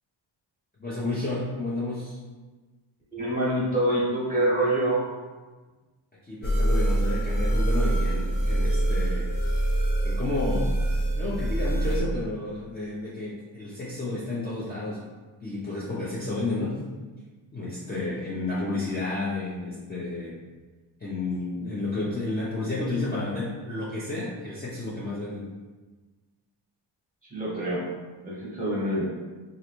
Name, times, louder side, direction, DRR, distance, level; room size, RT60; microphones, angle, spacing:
voice 1, 0.8-2.2 6.2-9.3 10.0-10.8 11.1-15.0 15.4-16.8 17.5-20.4 21.0-25.5, left 2 dB, 20° left, -9 dB, 0.6 m, -31 dB
voice 2, 3.1-5.1 27.3-27.8 28.2-29.0, right 1 dB, 15° right, -6 dB, 1.2 m, -25 dB
sound 1, 6.4-12.0, right 1 dB, 75° left, 1.2 m, -25 dB
3.1 x 2.5 x 3.0 m, 1.3 s
cardioid pair, 95°, 49 cm